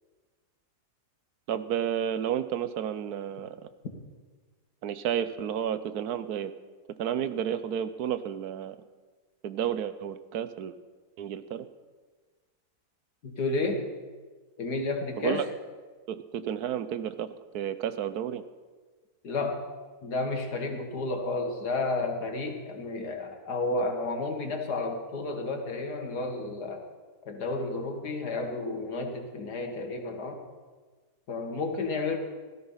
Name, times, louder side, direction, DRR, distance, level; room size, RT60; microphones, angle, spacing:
voice 1, 1.5-3.7 4.8-6.5 7.0-8.8 9.4-10.8 11.2-11.7 15.2-15.4 16.1-17.3 17.5-18.4, right 9 dB, 75° right, 12 dB, 1.2 m, -31 dB
voice 2, 13.2-13.9 14.6-15.4 19.2-19.6 20.0-26.8 27.3-30.4 31.3-32.2, left 2 dB, 75° left, 4 dB, 2.4 m, -31 dB
16.5 x 13.5 x 5.7 m, 1.4 s
omnidirectional pair, 1.7 m